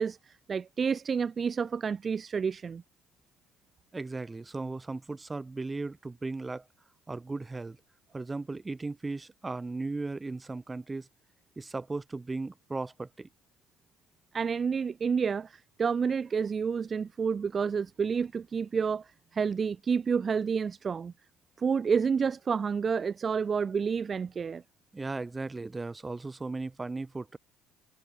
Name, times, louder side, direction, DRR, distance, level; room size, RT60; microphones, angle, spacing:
voice 1, 0.0-2.8 14.3-21.1 21.6-24.6, right 6 dB, 40° right, 0.4 m, -29 dB
voice 2, 3.9-6.7 7.1-7.8 8.1-11.1 11.6-13.3 24.9-27.4, right 3 dB, 20° right, 1.3 m, -36 dB
hypercardioid pair, 60°, 0 cm